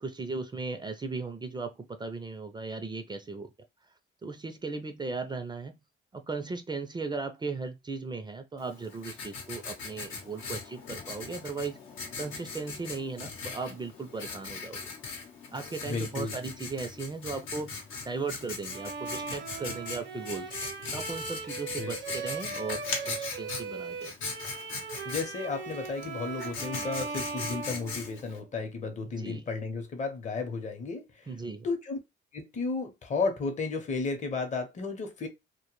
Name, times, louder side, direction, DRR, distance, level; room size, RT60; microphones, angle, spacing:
voice 1, 0.0-3.5 4.2-5.8 6.1-11.8 12.2-14.8 15.5-20.5 20.9-24.1 29.2-29.4 31.3-31.7, right 4 dB, 20° right, 0.4 m, -37 dB
Writing, 8.6-28.4, left 4 dB, 80° left, 0.8 m, -40 dB
voice 2, 15.8-16.4 21.8-22.0 25.1-31.3 31.6-32.0 32.3-35.3, left 4 dB, 35° left, 0.7 m, -33 dB
Bowed string instrument, 18.7-28.5, right 5 dB, 65° right, 0.7 m, -39 dB
2.1 x 2.1 x 3.0 m
cardioid pair, 90°, 20 cm